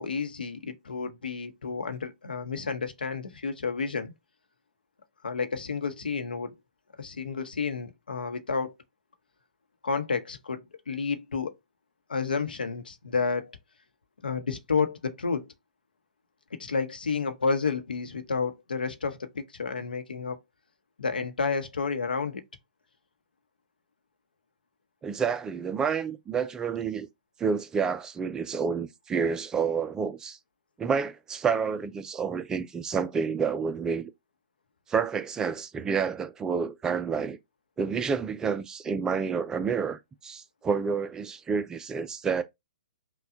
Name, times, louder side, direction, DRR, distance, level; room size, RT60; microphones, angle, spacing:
voice 1, 0.0-4.1 5.2-6.5 7.0-8.7 9.8-11.5 12.1-13.5 14.2-15.5 16.5-20.4 21.0-22.4, left 5 dB, 85° left, 0.8 m, -30 dB
voice 2, 25.0-27.1 27.4-30.4 30.8-34.1 34.9-37.4 37.8-42.4, right 6 dB, 15° right, 0.4 m, -29 dB
5.7 x 2.2 x 2.6 m
hypercardioid pair, 130°, 5 cm